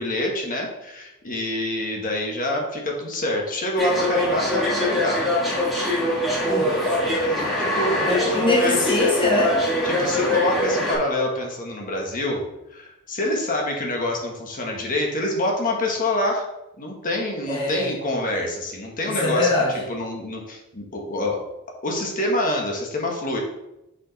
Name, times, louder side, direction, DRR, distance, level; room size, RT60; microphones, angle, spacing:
voice 1, 0.0-5.3 7.2-8.9 9.8-16.5 16.8-19.5 19.9-21.4 21.8-23.4, left 1 dB, 40° left, 0 dB, 1.3 m, -26 dB
sound 1, 3.8-11.0, left 1 dB, ahead, 2.0 m, -23 dB
voice 2, 6.5-7.3 8.1-9.6 17.5-17.9 19.1-19.8, left 2 dB, 25° left, -3 dB, 1.2 m, -23 dB
6.5 x 5.0 x 4.1 m, 0.91 s
head